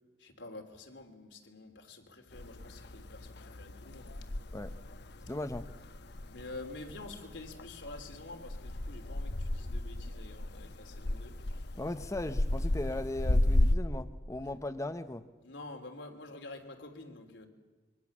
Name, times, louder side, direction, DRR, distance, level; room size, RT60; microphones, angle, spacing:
voice 1, 0.2-4.2 6.3-11.4 15.4-17.5, left 2 dB, 85° left, 3.2 m, -48 dB
sound 1, 2.3-13.8, left 1 dB, 65° left, 1.0 m, -34 dB
voice 2, 5.3-5.7 11.7-15.2, left 1 dB, 15° left, 0.7 m, -37 dB
26.5 x 23.5 x 7.3 m
head